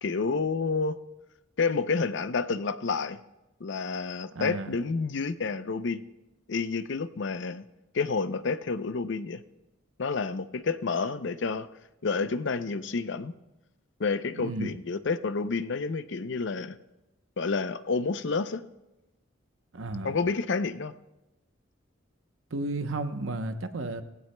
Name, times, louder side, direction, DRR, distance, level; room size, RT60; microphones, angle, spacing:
voice 1, 0.0-1.0 1.6-3.2 3.6-6.0 6.5-7.6 7.9-9.4 10.0-11.7 12.0-13.3 14.0-16.8 17.4-18.7 20.0-20.9, left 4 dB, 65° left, 13 dB, 0.6 m, -29 dB
voice 2, 4.4-4.7 14.3-14.7 19.7-20.1 22.5-24.0, right 2 dB, 85° right, 8 dB, 0.9 m, -32 dB
18.5 x 16.0 x 2.2 m, 0.99 s
head